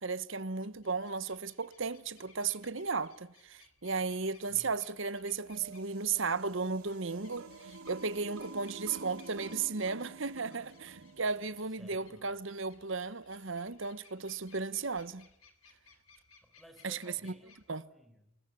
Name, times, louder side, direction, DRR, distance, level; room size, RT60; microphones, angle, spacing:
voice 1, 0.0-15.3 16.8-17.3 17.7-17.9, right 4 dB, 60° right, 1.1 m, -35 dB
sound 1, 0.6-17.7, left 5 dB, 80° left, 3.4 m, -63 dB
voice 2, 4.4-4.7 10.4-10.7 11.8-12.3 16.1-18.4, equal, ahead, 5.1 m, -58 dB
sound 2, 5.4-11.7, right 3 dB, 85° right, 2.5 m, -49 dB
28.5 x 21.0 x 9.8 m
head